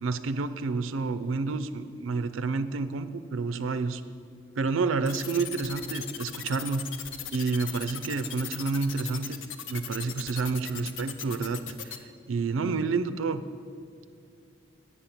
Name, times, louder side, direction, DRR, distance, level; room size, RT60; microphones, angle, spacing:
voice 1, 0.0-4.0 4.6-6.9 7.3-9.4 9.7-13.4, right 4 dB, 85° right, 10 dB, 0.4 m, -29 dB
sound 1, 5.0-12.0, left 9 dB, 75° left, 0.6 m, -38 dB
8.4 x 7.0 x 7.4 m, 2.4 s
head